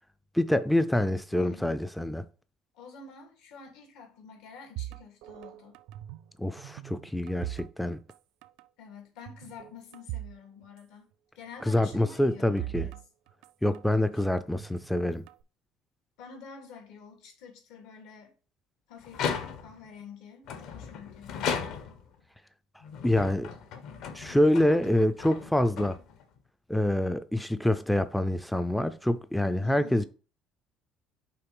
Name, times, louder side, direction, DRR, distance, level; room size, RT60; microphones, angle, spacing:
voice 1, 0.3-2.2 6.4-8.0 11.7-12.9 13.6-15.2 23.0-23.5 24.1-26.0 26.7-30.0, left 1 dB, 5° left, 0.3 m, -26 dB
voice 2, 1.3-1.8 2.7-5.7 8.8-11.1 11.3-13.0 14.1-14.3 16.2-18.3 18.9-21.6 29.6-30.1, left 5 dB, 85° left, 2.3 m, -48 dB
sound 1, 4.8-6.3 6.6-8.2 8.4-8.7 9.3-10.4 10.6-10.7 11.9-14.0 14.6-15.4, right 15 dB, 80° right, 0.3 m, -41 dB
sound 2, 19.0-19.9 20.5-22.1 22.8-26.4, left 7 dB, 65° left, 1.1 m, -36 dB
5.7 x 3.7 x 5.4 m
cardioid pair, 145°, 0 cm